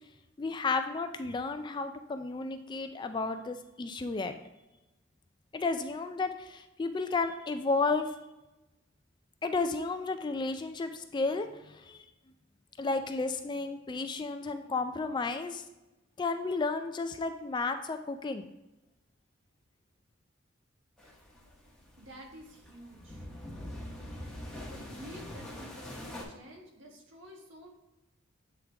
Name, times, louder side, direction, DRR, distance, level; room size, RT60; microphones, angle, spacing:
voice 1, 0.4-4.3 5.5-8.1 9.4-12.0 12.8-15.6 16.2-18.5, left 3 dB, 20° left, 8 dB, 0.3 m, -32 dB
sound 1, 21.0-26.2, left 1 dB, 5° left, 1.0 m, -44 dB
voice 2, 22.0-23.3 24.7-27.7, equal, 70° right, 0 dB, 1.3 m, -50 dB
7.9 x 3.8 x 3.4 m, 1.0 s
head